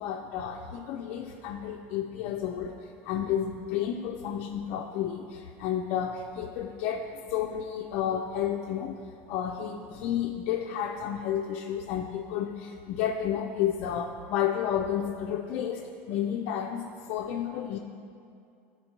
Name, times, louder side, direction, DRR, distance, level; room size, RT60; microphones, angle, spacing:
voice 1, 0.0-2.8 3.0-9.0 9.3-17.8, left 9 dB, 55° left, 1 dB, 0.4 m, -31 dB
12.0 x 4.3 x 2.9 m, 2.4 s
cardioid pair, 155°, 6 cm